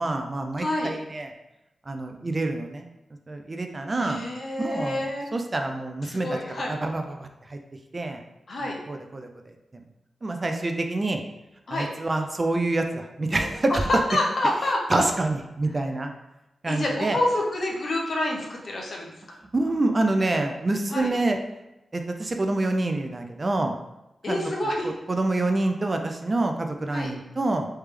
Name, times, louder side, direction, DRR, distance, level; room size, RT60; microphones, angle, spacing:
voice 1, 0.0-1.3 1.9-2.9 3.3-4.2 4.6-5.0 5.3-7.6 7.9-8.2 8.6-9.8 10.2-11.2 11.7-13.7 14.9-16.1 16.6-17.2 19.5-21.4 21.9-23.8 24.3-24.4 24.8-27.7, right 2 dB, 35° right, 4 dB, 0.4 m, -27 dB
voice 2, 0.6-0.9 4.0-5.3 6.0-6.7 8.5-8.8 11.7-11.9 13.7-13.8 14.1-15.0 16.7-19.2 20.9-21.1 24.2-24.9 26.9-27.1, left 1 dB, 55° left, -1 dB, 0.8 m, -27 dB
3.3 x 3.2 x 3.2 m, 0.95 s
wide cardioid pair, 85°, 0 cm